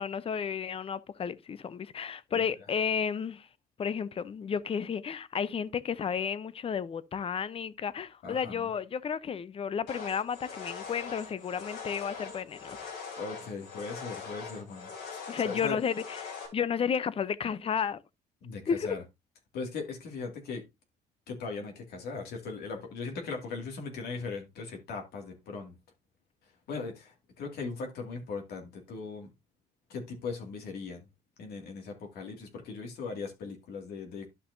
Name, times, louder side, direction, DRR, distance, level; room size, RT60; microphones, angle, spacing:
voice 1, 0.0-3.5 3.8-12.9 15.3-18.0 18.7-19.0, left 7 dB, 35° left, 0.6 m, -32 dB
voice 2, 8.2-8.7 13.2-15.8 18.4-19.0 19.5-20.6 21.3-25.7 26.7-29.3 29.9-31.1 31.4-34.3, left 4 dB, 70° left, 2.1 m, -39 dB
sound 1, 9.9-16.5, left 5 dB, 85° left, 3.5 m, -42 dB
12.0 x 5.9 x 2.6 m
cardioid pair, 110°, 17 cm